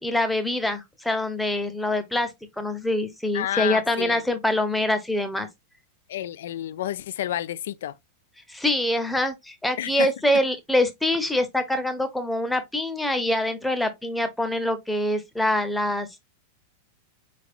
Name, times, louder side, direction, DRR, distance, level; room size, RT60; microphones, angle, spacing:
voice 1, 0.0-2.3 2.6-5.5 8.5-16.3, left 1 dB, 5° left, 0.8 m, -25 dB
voice 2, 3.3-4.3 6.1-7.9 9.8-10.1, left 12 dB, 60° left, 0.3 m, -30 dB
4.7 x 4.1 x 2.4 m
figure-of-eight pair, 90°, 0 cm